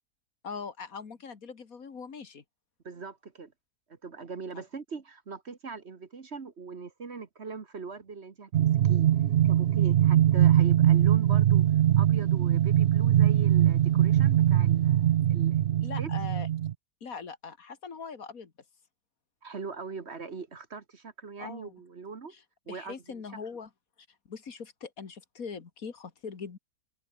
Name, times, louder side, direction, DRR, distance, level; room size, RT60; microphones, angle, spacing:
voice 1, 0.4-2.4 4.5-4.6 15.8-16.5 17.0-18.5 21.4-21.7 22.3-22.4 22.7-23.7 24.3-26.6, left 5 dB, 60° left, 2.2 m, -41 dB
voice 2, 2.8-3.5 3.9-9.1 9.4-11.7 12.0-16.1 19.4-22.3 22.7-23.2, right 4 dB, 45° right, 1.6 m, -41 dB
sound 1, 8.5-16.7, right 11 dB, 75° right, 0.5 m, -22 dB
omnidirectional pair, 1.7 m